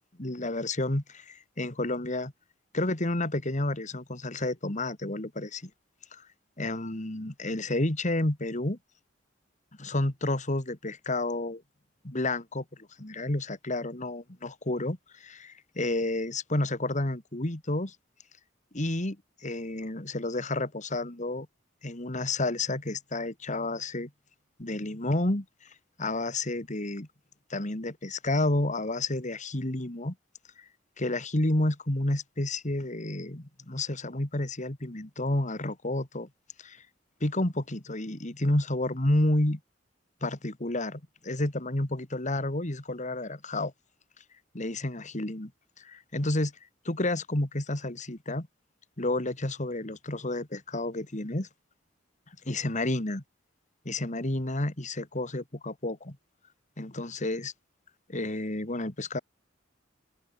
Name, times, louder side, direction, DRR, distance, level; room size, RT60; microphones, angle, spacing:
voice 1, 0.2-2.3 2.7-5.7 6.1-6.2 6.6-8.8 9.8-11.6 12.0-12.6 13.0-18.0 18.7-19.2 19.4-21.5 21.8-24.1 24.6-25.7 26.0-27.1 27.5-30.1 31.0-36.3 36.6-36.8 37.2-39.6 40.2-43.7 44.5-45.5 45.8-46.5 46.8-48.5 49.0-51.5 52.5-53.2 53.8-56.2 56.8-57.5 58.1-59.2, left 1 dB, 40° left, 2.4 m, -30 dB
head